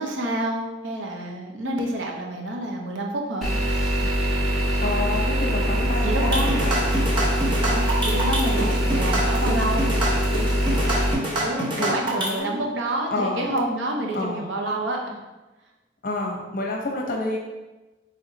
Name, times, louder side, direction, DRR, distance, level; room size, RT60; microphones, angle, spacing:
voice 1, 0.0-3.5 6.0-6.6 7.7-9.9 11.4-15.2, right 1 dB, 75° right, 0 dB, 0.8 m, -28 dB
sound 1, 3.4-11.1, equal, ahead, 0.8 m, -23 dB
voice 2, 4.8-7.1 7.5-7.6 8.6-8.8 11.2-11.4 11.8-12.6 13.1-13.5 14.1-14.5 16.0-17.4, left 2 dB, 45° left, 0 dB, 0.9 m, -29 dB
sound 2, 6.2-12.4, right 1 dB, 25° right, 0.9 m, -26 dB
3.9 x 3.3 x 4.1 m, 1.1 s
head